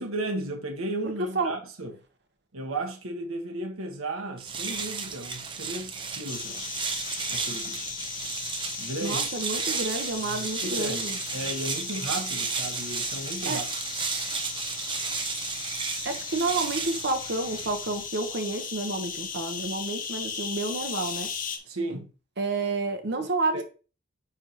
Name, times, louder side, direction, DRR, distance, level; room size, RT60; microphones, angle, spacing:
voice 1, 0.0-2.0 2.5-6.9 7.3-8.0 8.8-9.2 10.2-11.0 11.3-13.7 21.7-22.1 23.1-23.6, right 2 dB, 90° right, 1.3 m, -35 dB
voice 2, 1.2-1.5 9.0-11.2 13.4-13.6 16.0-21.3 22.4-23.6, right 3 dB, 55° right, 1.0 m, -30 dB
sound 1, 4.4-18.1, right 5 dB, 25° right, 0.8 m, -33 dB
sound 2, 6.3-21.6, left 6 dB, 40° left, 0.9 m, -37 dB
9.9 x 3.5 x 2.9 m
head